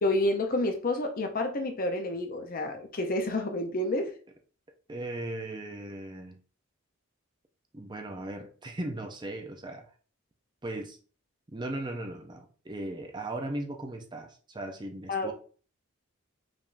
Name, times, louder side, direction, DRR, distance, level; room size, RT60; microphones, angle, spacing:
voice 1, 0.0-4.1 15.1-15.3, left 1 dB, 40° left, 0.7 m, -29 dB
voice 2, 4.9-6.4 7.7-9.9 10.6-11.0 11.5-15.3, right 1 dB, 20° right, 0.6 m, -37 dB
5.1 x 3.5 x 2.6 m
head